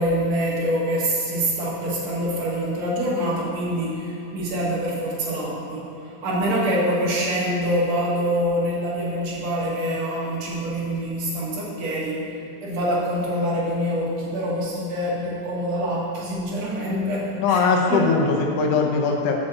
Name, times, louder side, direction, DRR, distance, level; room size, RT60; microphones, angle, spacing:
voice 1, 0.0-5.9 6.2-12.3 12.6-18.1, equal, 60° right, -4 dB, 2.6 m, -25 dB
voice 2, 17.4-19.3, left 4 dB, 65° left, 1 dB, 1.8 m, -20 dB
8.6 x 6.0 x 7.6 m, 3.0 s
omnidirectional pair, 3.5 m